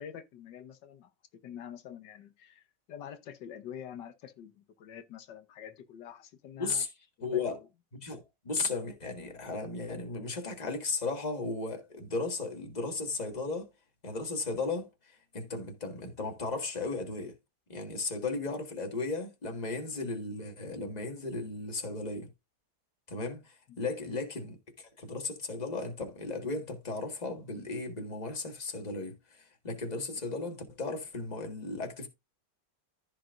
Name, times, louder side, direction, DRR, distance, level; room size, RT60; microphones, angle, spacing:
voice 1, 0.0-6.8 7.2-7.6 23.7-24.2, left 9 dB, 85° left, 1.6 m, -47 dB
voice 2, 7.2-7.6 7.9-13.7 14.0-17.3 17.7-22.3 23.1-32.1, left 3 dB, 25° left, 1.7 m, -35 dB
15.0 x 5.1 x 2.5 m
omnidirectional pair, 1.8 m